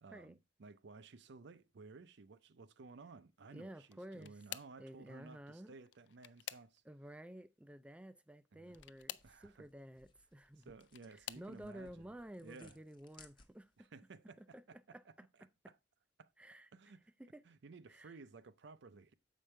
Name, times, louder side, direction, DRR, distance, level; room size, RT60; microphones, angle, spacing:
voice 1, 0.0-6.8 8.5-8.8 9.2-9.7 10.6-12.1 12.4-12.8 13.8-14.4 14.7-14.8 16.2-16.3 16.7-17.0 17.4-19.1, right 4 dB, 70° right, 0.5 m, -56 dB
voice 2, 3.5-4.4 4.8-5.7 6.8-10.7 11.1-13.9 14.4-15.0 16.4-16.9 17.2-17.4 17.9-18.2, right 1 dB, 5° right, 0.3 m, -53 dB
sound 1, 3.8-4.9 5.8-7.1 8.7-9.4 10.5-11.5 12.3-12.6 13.0-13.2 14.5-14.6, left 12 dB, 70° left, 0.4 m, -50 dB
sound 2, 8.6-13.9, left 4 dB, 25° left, 0.9 m, -67 dB
7.4 x 5.1 x 4.3 m
head